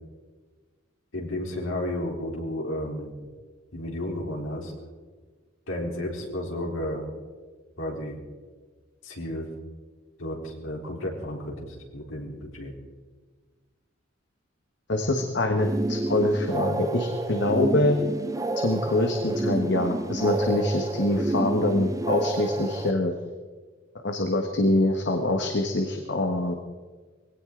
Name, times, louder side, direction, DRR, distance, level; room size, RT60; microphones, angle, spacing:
voice 1, 1.1-3.1 3.7-4.7 5.7-7.0 7.8-8.2 9.0-9.5 10.2-12.7, left 1 dB, 85° left, -1 dB, 3.8 m, -32 dB
voice 2, 14.9-18.0 18.6-23.1 24.0-26.5, left 1 dB, 60° left, 4 dB, 1.4 m, -24 dB
sound 1, 15.6-22.9, right 2 dB, 15° right, 0.5 m, -29 dB
21.5 x 17.0 x 3.9 m, 1.4 s
head